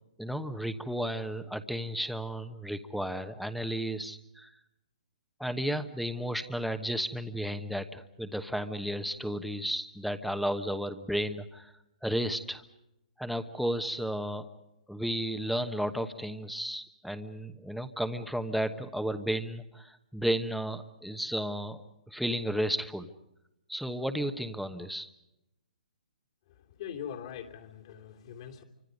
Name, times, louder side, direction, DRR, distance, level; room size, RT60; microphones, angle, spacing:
voice 1, 0.2-4.5 5.4-11.7 12.0-12.6 13.2-14.5 14.9-21.8 22.1-23.1 23.7-25.1, equal, ahead, 10 dB, 1.2 m, -33 dB
voice 2, 26.5-28.6, left 8 dB, 45° left, 3 dB, 3.0 m, -42 dB
28.0 x 25.0 x 5.3 m, 0.91 s
hypercardioid pair, 135°, 4 cm